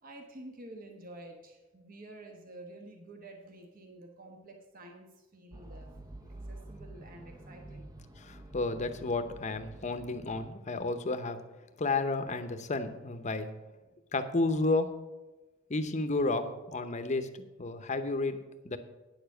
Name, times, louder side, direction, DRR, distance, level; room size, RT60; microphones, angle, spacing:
voice 1, 0.0-6.0 6.4-7.9, right 1 dB, 45° right, 3 dB, 1.1 m, -50 dB
sound 1, 5.5-10.5, right 1 dB, 20° right, 0.6 m, -48 dB
voice 2, 8.2-11.4 11.8-13.5 14.1-14.9 15.7-18.4 18.6-18.8, left 3 dB, 35° left, 9 dB, 0.8 m, -32 dB
9.5 x 7.0 x 6.5 m, 1.1 s
head